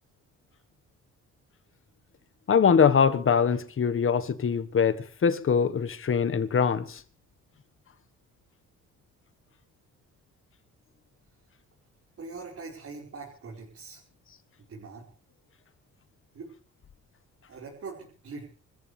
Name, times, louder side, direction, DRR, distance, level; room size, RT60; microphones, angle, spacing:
voice 1, 2.5-7.0, left 6 dB, 45° left, 1.5 m, -23 dB
voice 2, 12.2-14.0 14.7-15.1 16.3-16.5 17.5-18.4, right 4 dB, 50° right, 5.1 m, -42 dB
25.5 x 14.5 x 3.4 m
cardioid pair, 90°, 30 cm